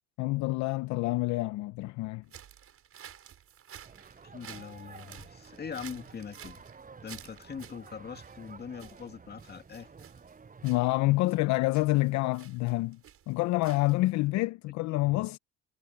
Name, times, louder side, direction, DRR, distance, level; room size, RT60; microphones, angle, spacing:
voice 1, 0.2-2.2 10.6-13.0 13.3-15.4, left 20 dB, 65° left, 0.8 m, -27 dB
sound 1, 2.2-14.3, right 9 dB, 50° right, 7.6 m, -52 dB
sound 2, 3.8-11.2, right 5 dB, 25° right, 7.2 m, -52 dB
voice 2, 4.2-6.6 7.0-9.9 14.4-14.5 15.0-15.2, left 6 dB, 35° left, 2.1 m, -42 dB
supercardioid pair, 80°, 30 cm